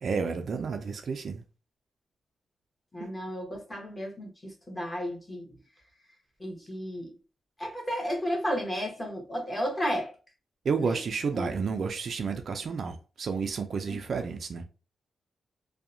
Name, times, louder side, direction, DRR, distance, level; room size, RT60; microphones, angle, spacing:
voice 1, 0.0-1.4 3.0-3.1 10.6-14.6, right 5 dB, 55° right, 0.3 m, -31 dB
voice 2, 2.9-5.5 6.4-7.1 7.6-10.1 10.8-11.0 11.3-11.5 13.9-14.0, equal, 20° left, 1.0 m, -33 dB
2.7 x 2.1 x 2.5 m
wide cardioid pair, 125°, 0 cm